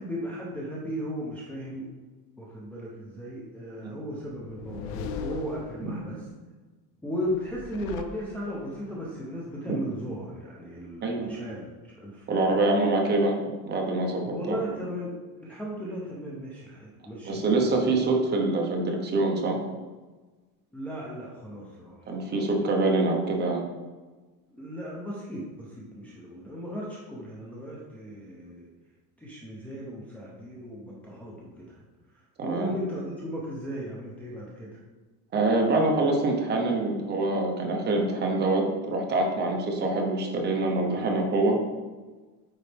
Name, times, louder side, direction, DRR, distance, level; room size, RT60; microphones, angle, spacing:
voice 1, 0.0-1.9 2.4-6.2 7.0-11.6 12.0-12.6 14.2-17.4 20.7-22.0 22.3-22.5 24.5-28.7 29.2-31.8 32.4-34.7, equal, 5° left, -6 dB, 0.7 m, -36 dB
sound 1, 4.2-6.2 7.3-8.8, left 6 dB, 70° left, 0.6 m, -39 dB
voice 2, 12.3-13.4 13.7-14.6 17.2-19.6 22.1-23.6 32.4-32.7 35.3-41.6, right 2 dB, 25° right, 1 dB, 1.0 m, -25 dB
9.2 x 4.1 x 3.4 m, 1.3 s
cardioid pair, 175°, 39 cm